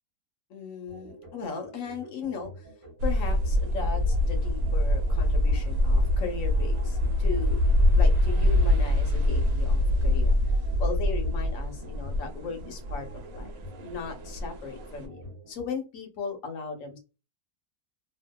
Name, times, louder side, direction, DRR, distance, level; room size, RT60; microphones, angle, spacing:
voice 1, 0.5-2.7 3.0-7.6 7.9-10.4 10.8-17.0, left 5 dB, 65° left, 3 dB, 1.0 m, -37 dB
sound 1, 0.9-15.5, right 1 dB, 30° right, 0.8 m, -47 dB
sound 2, 3.0-15.1, left 1 dB, 85° right, 1.2 m, -24 dB
2.7 x 2.2 x 2.2 m, 0.30 s
omnidirectional pair, 1.7 m